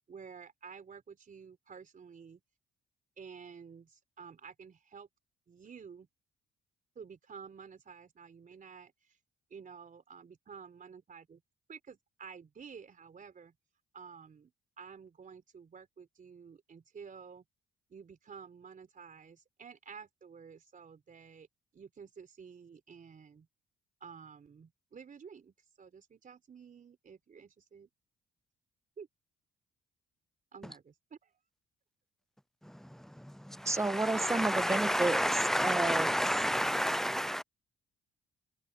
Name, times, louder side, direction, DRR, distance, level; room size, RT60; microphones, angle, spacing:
voice 1, 0.1-2.4 3.2-5.1 5.5-6.1 7.0-9.2 9.5-11.4 11.7-13.5 13.9-14.5 14.8-17.4 17.9-21.5 21.7-23.5 24.0-27.9 29.0-29.1 30.5-31.4, right 6 dB, 40° right, 4.0 m, -51 dB
voice 2, 33.6-35.2 35.6-36.1, right 2 dB, 15° right, 1.3 m, -31 dB
voice 3, 34.3-37.4, equal, ahead, 0.3 m, -29 dB
cardioid pair, 90°, 20 cm